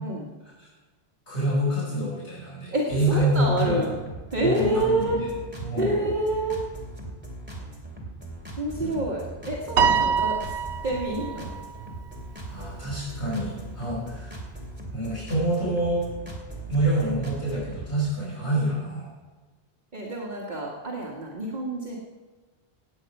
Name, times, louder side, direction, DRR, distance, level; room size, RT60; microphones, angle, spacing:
voice 1, 1.3-3.8 4.4-5.3 5.6-5.9 8.8-9.1 12.5-14.4 14.9-16.1 16.7-19.1, right 1 dB, 70° left, -8 dB, 5.8 m, -27 dB
voice 2, 2.7-4.0 4.3-5.2 5.8-6.6 8.6-10.5 10.8-11.5 19.9-22.0, right 1 dB, 40° right, -3 dB, 1.7 m, -27 dB
sound 1, 2.9-17.9, right 2 dB, 10° right, 2.7 m, -39 dB
Piano, 9.8-12.3, right 6 dB, 75° right, 1.1 m, -25 dB
16.5 x 9.2 x 5.3 m, 1.3 s
omnidirectional pair, 1.2 m